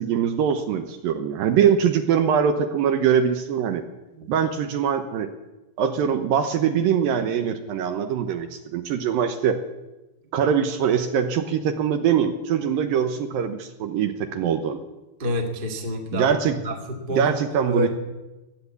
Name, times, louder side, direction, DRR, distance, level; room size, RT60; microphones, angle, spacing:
voice 1, 0.0-3.8 4.3-5.3 5.8-9.6 10.3-14.8 16.1-16.6 17.1-17.9, right 8 dB, 75° right, 7 dB, 2.3 m, -22 dB
voice 2, 15.2-16.3 16.6-17.3 17.7-17.9, left 1 dB, 60° right, 3 dB, 0.5 m, -27 dB
16.5 x 10.5 x 8.3 m, 1.1 s
omnidirectional pair, 4.9 m